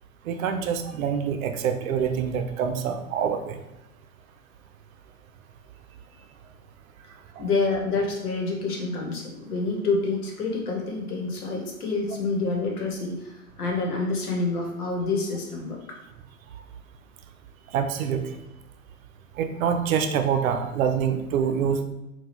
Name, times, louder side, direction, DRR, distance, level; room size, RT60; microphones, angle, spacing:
voice 1, 0.2-3.6 7.4-7.5 17.7-18.2 19.4-21.8, right 7 dB, 65° right, 7 dB, 0.6 m, -26 dB
voice 2, 7.4-15.8, left 3 dB, 80° left, 0 dB, 1.1 m, -27 dB
3.9 x 2.3 x 2.9 m, 0.94 s
hypercardioid pair, 110°, 44 cm